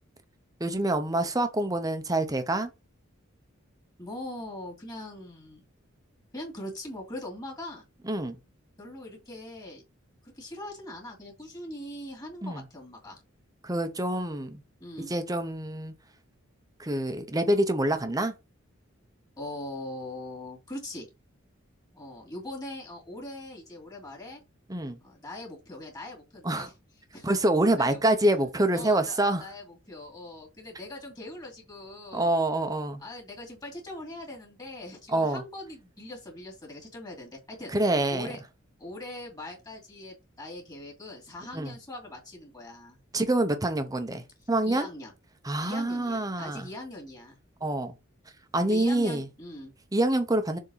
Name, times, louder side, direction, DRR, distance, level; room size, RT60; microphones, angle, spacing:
voice 1, 0.6-2.7 8.0-8.4 12.4-12.6 13.6-14.6 15.1-15.9 16.8-18.3 24.7-25.0 26.4-26.7 27.2-29.4 32.1-33.0 35.1-35.4 37.7-38.3 41.5-41.7 43.1-44.9 45.4-46.7 47.6-47.9 48.5-49.3 49.9-50.6, right 1 dB, 20° right, 0.9 m, -26 dB
voice 2, 4.0-5.7 6.3-7.8 8.8-9.8 10.2-13.2 14.8-15.1 19.4-21.1 21.9-24.4 25.0-26.7 27.1-27.3 27.8-28.1 28.7-32.4 33.0-37.7 38.1-38.4 38.8-43.0 44.7-45.1 45.6-47.4 48.6-49.7, left 1 dB, 20° left, 2.6 m, -41 dB
6.9 x 3.8 x 4.0 m
head